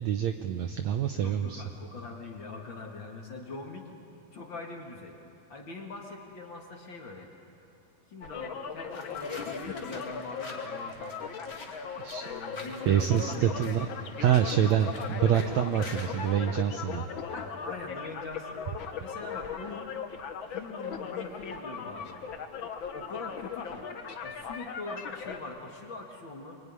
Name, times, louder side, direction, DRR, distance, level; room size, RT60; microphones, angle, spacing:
voice 1, 0.0-1.6 12.0-12.3 12.9-13.9 14.1-17.0, right 9 dB, 75° right, 7 dB, 1.7 m, -26 dB
voice 2, 1.1-3.9 4.3-5.2 5.5-7.3 8.1-11.1 12.2-13.7 17.3-18.6 19.0-19.9 20.5-22.2 22.9-23.9 24.2-26.6, left 3 dB, 40° left, 1 dB, 2.2 m, -42 dB
sound 1, 8.2-25.4, left 6 dB, 65° left, 1.2 m, -38 dB
sound 2, 8.9-16.3, left 2 dB, 20° left, 2.3 m, -47 dB
25.5 x 23.5 x 9.8 m, 2.7 s
omnidirectional pair, 4.0 m